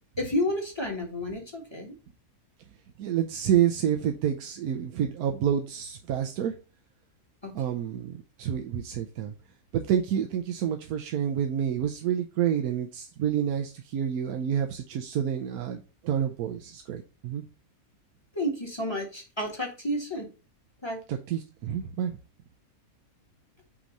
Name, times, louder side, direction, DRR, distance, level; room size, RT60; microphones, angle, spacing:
voice 1, 0.2-1.9 7.4-7.5 18.3-20.3 20.8-21.0, left 1 dB, 20° left, 0 dB, 1.7 m, -31 dB
voice 2, 3.0-6.6 7.5-9.3 9.7-17.4 21.1-22.2, right 9 dB, 90° right, 3 dB, 1.2 m, -28 dB
6.1 x 3.0 x 5.2 m, 0.32 s
omnidirectional pair, 1.5 m